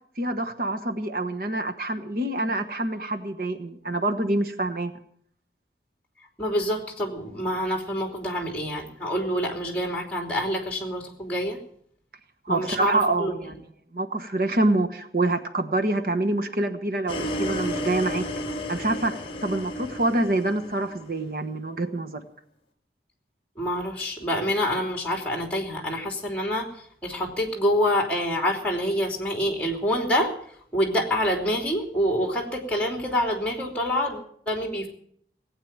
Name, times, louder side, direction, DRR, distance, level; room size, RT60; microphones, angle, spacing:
voice 1, 0.2-4.9 12.4-13.5 13.9-18.3 18.7-22.3, right 2 dB, 55° right, 6 dB, 1.3 m, -26 dB
voice 2, 6.4-11.6 12.5-13.5 23.6-26.7 27.0-30.3 30.7-34.9, equal, 10° left, 2 dB, 3.0 m, -26 dB
sound 1, 17.1-21.2, left 1 dB, 30° left, 1.5 m, -32 dB
18.5 x 8.8 x 8.8 m, 0.65 s
head